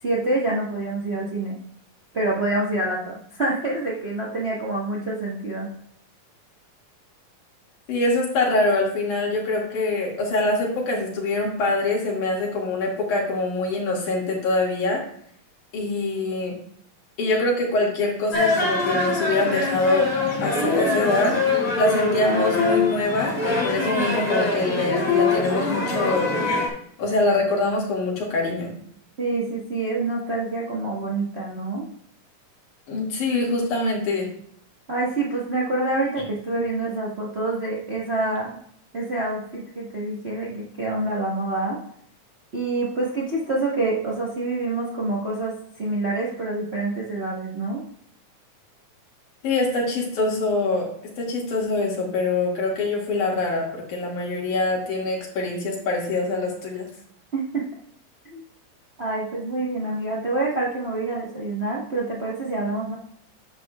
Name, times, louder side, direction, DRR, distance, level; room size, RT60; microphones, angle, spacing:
voice 1, 0.0-1.5 2.1-5.7 29.2-31.9 34.9-38.6 38.9-41.8 42.5-47.8 57.3-57.6 58.3-58.4 59.0-63.0, right 2 dB, 70° right, -4 dB, 0.6 m, -27 dB
voice 2, 7.9-15.0 15.7-16.6 17.2-20.1 20.4-21.4 21.7-26.4 27.0-28.8 32.9-34.3 49.4-56.9, left 2 dB, 70° left, -2 dB, 3.6 m, -24 dB
sound 1, 18.3-26.7, left 3 dB, 40° left, 3.9 m, -23 dB
10.5 x 8.4 x 2.4 m, 0.64 s
omnidirectional pair, 3.7 m